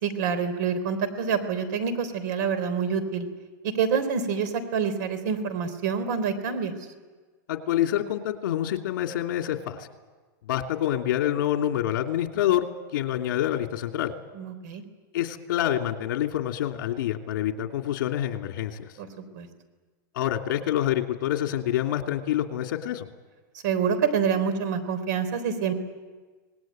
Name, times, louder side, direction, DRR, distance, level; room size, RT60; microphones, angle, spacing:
voice 1, 0.0-3.3 3.6-6.7 14.3-14.8 19.0-19.5 23.6-25.7, right 6 dB, 60° right, 12 dB, 3.6 m, -27 dB
voice 2, 7.5-9.9 10.5-12.7 12.9-14.1 15.1-18.9 20.1-23.1, left 12 dB, 70° left, 4 dB, 2.8 m, -27 dB
26.5 x 19.5 x 9.2 m, 1.4 s
supercardioid pair, 165°, 11 cm